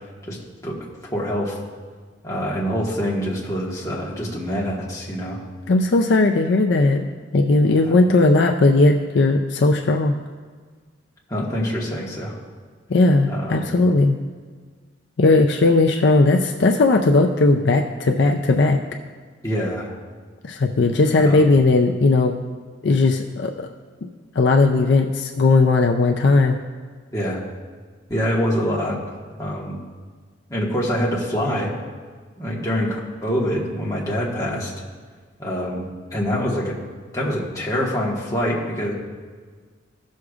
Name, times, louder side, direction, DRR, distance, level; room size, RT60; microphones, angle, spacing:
voice 1, 1.1-1.6 2.2-5.4 7.8-7.9 11.3-12.4 13.3-13.7 19.4-19.9 21.1-21.5 27.1-27.4 28.1-29.0 29.4-29.8 30.5-31.7 32.4-34.7 35.4-35.8 36.1-36.8 37.1-38.9, equal, 15° left, -4 dB, 1.4 m, -25 dB
voice 2, 5.7-7.0 7.3-10.1 12.9-14.2 15.2-18.8 20.4-22.4 22.8-23.7 24.4-26.6, left 3 dB, 60° left, 3 dB, 0.4 m, -17 dB
16.0 x 6.4 x 2.4 m, 1.5 s
head